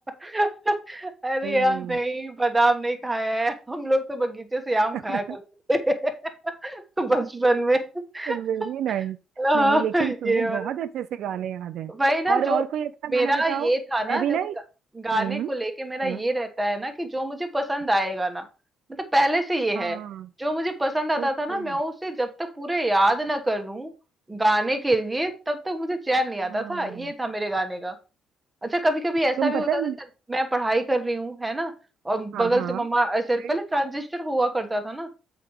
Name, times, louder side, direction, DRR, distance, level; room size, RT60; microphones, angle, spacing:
voice 1, 0.2-5.4 5.7-6.3 6.6-7.9 8.1-8.7 9.4-10.7 11.9-12.6 13.1-14.4 14.9-18.4 19.1-20.0 20.4-23.9 24.3-28.0 28.6-29.9 30.3-31.7 32.0-35.1, right 1 dB, 10° right, 1.1 m, -25 dB
voice 2, 1.4-2.0 5.1-5.4 8.3-9.2 9.5-11.9 12.3-13.7 14.1-14.6 15.1-15.5 16.0-16.2 19.7-20.3 21.2-21.8 26.5-27.1 29.4-30.0 32.3-32.9 33.4-33.6, right 10 dB, 65° right, 0.4 m, -30 dB
7.9 x 5.0 x 4.6 m
cardioid pair, 150°, 0 cm